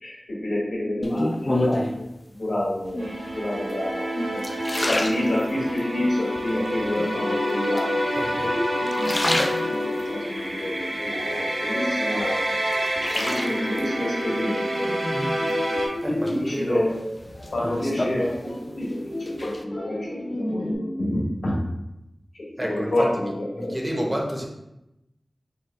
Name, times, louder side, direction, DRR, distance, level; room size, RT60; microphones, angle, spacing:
voice 1, 0.0-2.1 2.4-4.5 4.8-8.1 8.4-8.8 9.7-12.5 13.1-14.9 16.1-17.0 17.5-21.6 22.3-24.1, left 1 dB, 85° left, -5 dB, 1.2 m, -28 dB
sound 1, 1.0-2.1 2.9-3.4 3.9-5.9 6.4-7.0 7.8-8.4 8.8-10.1 10.6-11.8 12.2-13.8 15.2-15.8 16.3-18.9 19.1-19.6, left 1 dB, 30° left, 0.3 m, -29 dB
sound 2, 3.0-15.9, equal, 90° right, 0.9 m, -28 dB
sound 3, 7.0-20.8, left 1 dB, 65° left, 1.0 m, -35 dB
voice 2, 8.2-8.5 16.0-16.9 22.6-23.1 23.6-24.5, equal, 15° right, -1 dB, 0.7 m, -29 dB
4.5 x 2.2 x 3.9 m, 0.90 s
wide cardioid pair, 80°, 0 cm